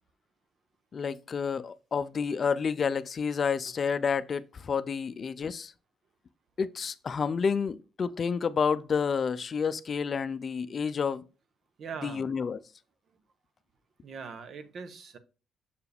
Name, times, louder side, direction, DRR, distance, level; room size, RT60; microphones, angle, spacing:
voice 1, 0.9-5.7 6.6-11.2 12.0-12.6, left 6 dB, 45° left, 0.4 m, -29 dB
voice 2, 11.8-12.3 14.0-15.2, right 5 dB, 60° right, 0.9 m, -41 dB
6.8 x 4.6 x 3.4 m
cardioid pair, 90°, 0 cm